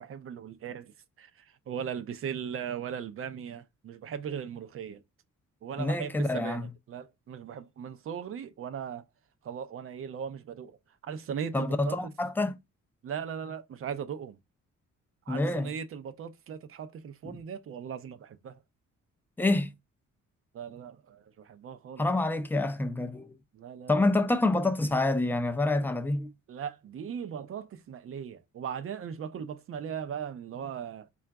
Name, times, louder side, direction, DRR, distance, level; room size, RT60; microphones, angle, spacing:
voice 1, 0.0-5.0 5.6-9.1 9.4-12.0 13.0-14.4 15.3-18.6 20.5-22.0 23.5-24.1 26.5-31.1, right 7 dB, 45° right, 0.5 m, -38 dB
voice 2, 5.8-6.7 11.5-12.5 15.3-15.7 19.4-19.7 22.0-23.3 23.9-26.3, left 2 dB, 5° left, 0.4 m, -27 dB
3.7 x 2.4 x 3.3 m
cardioid pair, 90°, 30 cm